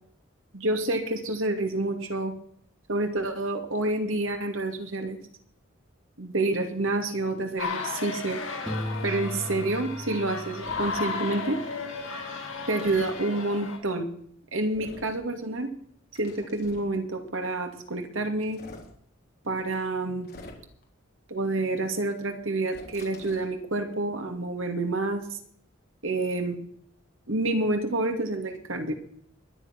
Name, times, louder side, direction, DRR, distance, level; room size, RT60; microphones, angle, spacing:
voice 1, 0.5-2.3 2.9-5.2 6.2-8.4 9.0-11.6 12.7-14.1 14.5-15.7 16.2-18.6 19.4-20.3 21.3-25.4 26.0-26.6 27.3-28.9, right 2 dB, 75° right, 5 dB, 2.5 m, -28 dB
sound 1, 7.6-13.8, left 4 dB, 80° left, 6.0 m, -34 dB
Piano, 8.7-11.4, equal, 5° left, 2.5 m, -36 dB
sound 2, 10.6-11.0 12.8-13.1 14.7-15.2 16.1-16.9 18.4-18.9 20.2-20.8 22.7-23.5, left 1 dB, 50° left, 3.5 m, -45 dB
21.5 x 10.5 x 6.0 m, 0.63 s
head